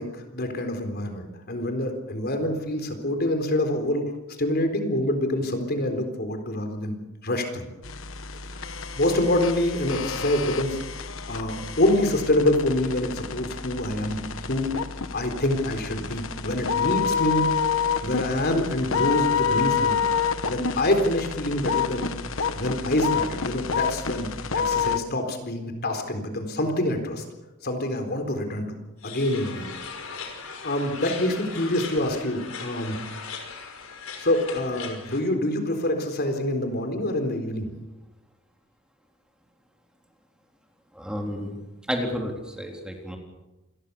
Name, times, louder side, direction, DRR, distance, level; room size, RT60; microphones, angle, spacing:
voice 1, 0.0-4.1 4.4-7.0 7.2-7.7 8.6-10.8 11.3-14.7 15.1-17.5 18.0-20.0 20.5-22.1 22.5-24.3 24.5-27.2 27.6-28.8 29.0-29.7 30.6-33.0 34.2-37.7, left 1 dB, 50° left, 6 dB, 4.0 m, -26 dB
sound 1, 7.8-25.0, left 6 dB, 65° left, 1.4 m, -28 dB
sound 2, 29.0-35.2, left 5 dB, 85° left, 5.7 m, -39 dB
voice 2, 40.9-41.5 41.9-43.2, equal, 5° right, 1 dB, 3.8 m, -31 dB
28.0 x 21.0 x 7.1 m, 1.0 s
head